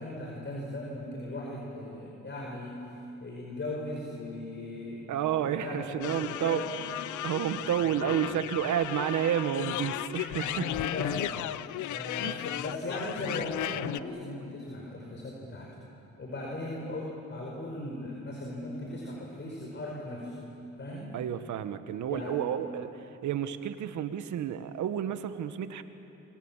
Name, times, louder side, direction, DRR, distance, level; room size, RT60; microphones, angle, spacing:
voice 1, 0.0-2.8 3.2-5.1 5.4-6.7 10.4-11.3 11.9-15.8 16.2-20.5 20.8-21.1 22.1-22.4, left 1 dB, 40° left, -1 dB, 5.1 m, -38 dB
voice 2, 5.1-6.6 7.2-10.7 12.2-12.5 21.1-22.9 23.2-25.8, right 10 dB, 75° right, 10 dB, 1.5 m, -30 dB
sound 1, 6.0-14.0, left 13 dB, 80° left, 0.7 m, -35 dB
28.0 x 25.0 x 7.5 m, 2.9 s
cardioid pair, 90°, 30 cm